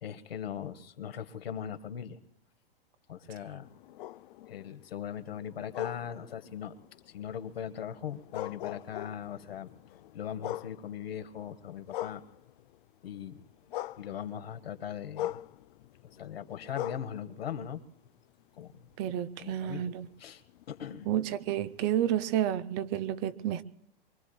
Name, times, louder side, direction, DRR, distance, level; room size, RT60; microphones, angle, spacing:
voice 1, 0.0-2.2 3.1-3.7 4.5-6.7 7.1-9.7 10.1-12.2 13.0-13.4 14.0-15.4 16.0-17.8 18.6-18.9 19.4-19.9 20.2-20.4 20.7-21.1, left 8 dB, 75° left, 1.3 m, -39 dB
sound 1, 3.6-12.8 13.2-18.4 18.9-22.4, left 14 dB, 60° left, 0.5 m, -43 dB
voice 2, 19.0-20.1 21.1-23.6, right 11 dB, 35° right, 0.6 m, -30 dB
24.5 x 23.5 x 2.3 m
hypercardioid pair, 110°, 30 cm